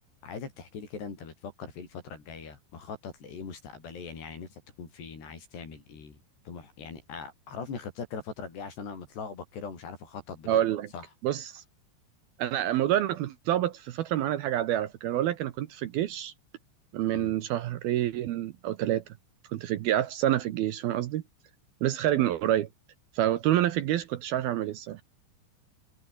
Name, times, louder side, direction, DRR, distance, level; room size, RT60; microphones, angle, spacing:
voice 1, 0.2-10.7 10.9-11.0 17.1-17.3, left 5 dB, 65° left, 7.8 m, -41 dB
voice 2, 10.5-10.9 11.2-11.6 12.4-16.3 16.9-19.0 19.5-21.2 21.8-22.7 23.1-25.0, right 12 dB, 70° right, 2.6 m, -27 dB
omnidirectional pair, 5.1 m